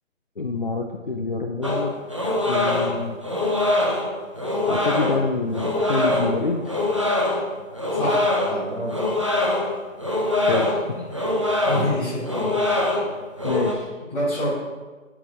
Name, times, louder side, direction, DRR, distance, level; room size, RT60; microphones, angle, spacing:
voice 1, 0.4-1.9 2.5-3.2 4.7-6.7 10.4-10.9 11.7-11.9 13.4-13.9, left 3 dB, 40° left, 2 dB, 0.4 m, -26 dB
sound 1, 1.6-13.7, left 1 dB, 25° right, 0.4 m, -24 dB
voice 2, 7.9-9.0 11.6-12.5 14.1-14.5, equal, 5° left, -11 dB, 0.8 m, -27 dB
7.3 x 4.7 x 4.9 m, 1.3 s
figure-of-eight pair, 155°, 40 cm